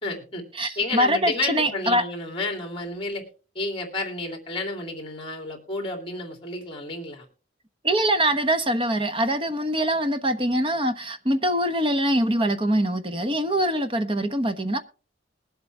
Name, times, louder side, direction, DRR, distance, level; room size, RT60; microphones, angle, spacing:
voice 1, 0.0-0.4 0.8-3.2 3.5-7.3, left 2 dB, 30° left, 2.9 m, -31 dB
voice 2, 0.6-2.0 7.8-14.8, right 1 dB, 30° right, 1.0 m, -23 dB
21.0 x 7.9 x 3.5 m
head